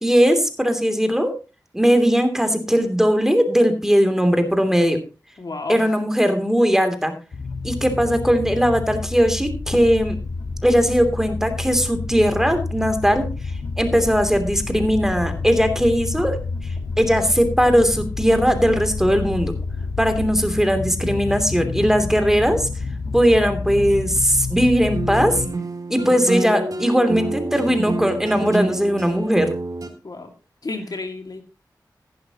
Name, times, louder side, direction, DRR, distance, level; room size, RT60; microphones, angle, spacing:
voice 1, 0.0-1.3 1.7-5.0 5.7-7.1 7.6-10.2 10.6-13.2 13.8-16.4 17.0-19.5 20.0-22.7 23.1-25.4 25.9-29.5, equal, 5° right, 7 dB, 2.9 m, -19 dB
voice 2, 5.4-5.9 30.0-30.3 30.6-31.4, left 3 dB, 60° left, 5 dB, 2.2 m, -31 dB
sound 1, 7.3-25.5, left 4 dB, 80° left, 1.4 m, -29 dB
sound 2, 24.9-29.9, right 2 dB, 55° right, 3.2 m, -27 dB
15.0 x 11.5 x 2.9 m, 0.31 s
cardioid pair, 50°, 7 cm